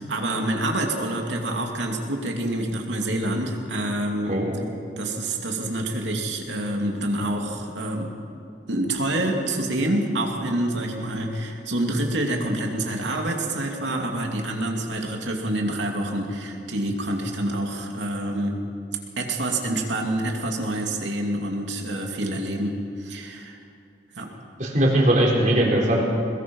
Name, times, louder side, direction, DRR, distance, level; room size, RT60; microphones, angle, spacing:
voice 1, 0.0-4.4 5.0-8.1 8.7-18.6 19.2-22.7 23.0-23.6 24.2-24.3, right 1 dB, 85° right, 1 dB, 2.8 m, -27 dB
voice 2, 24.6-26.0, right 1 dB, 45° right, -2 dB, 4.3 m, -20 dB
22.0 x 21.0 x 5.5 m, 2.6 s
head